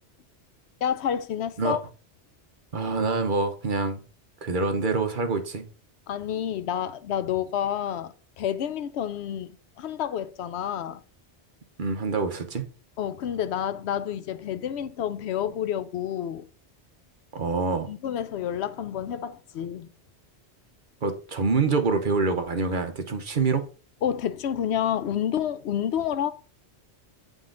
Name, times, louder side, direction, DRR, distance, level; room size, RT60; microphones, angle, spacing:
voice 1, 0.8-1.8 6.1-11.0 13.0-16.4 17.9-19.9 24.0-26.3, left 9 dB, 75° left, 0.8 m, -29 dB
voice 2, 2.7-4.0 4.4-5.7 11.8-12.6 17.3-17.9 21.0-23.7, right 4 dB, 50° right, 1.0 m, -26 dB
8.9 x 3.9 x 3.8 m
omnidirectional pair, 1.2 m